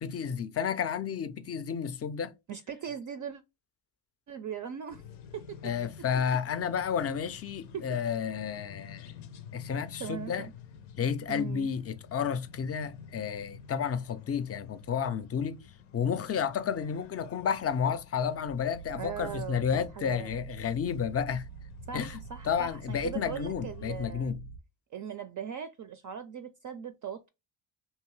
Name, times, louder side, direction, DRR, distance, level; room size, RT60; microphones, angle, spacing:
voice 1, 0.0-2.3 5.6-9.2 9.5-10.5 11.0-15.6 15.9-21.5 21.9-24.5, left 7 dB, 30° left, 0.4 m, -31 dB
voice 2, 2.5-3.4 4.3-5.0 5.3-5.7 7.7-8.0 10.0-10.5 11.3-11.7 18.9-19.6 19.9-20.3 21.9-24.4 24.9-27.3, right 8 dB, 40° right, 0.4 m, -39 dB
sound 1, 4.9-24.1, left 7 dB, 85° left, 0.6 m, -50 dB
sound 2, 18.7-24.6, right 5 dB, 85° right, 0.6 m, -46 dB
2.7 x 2.2 x 3.0 m
supercardioid pair, 60°, 50 cm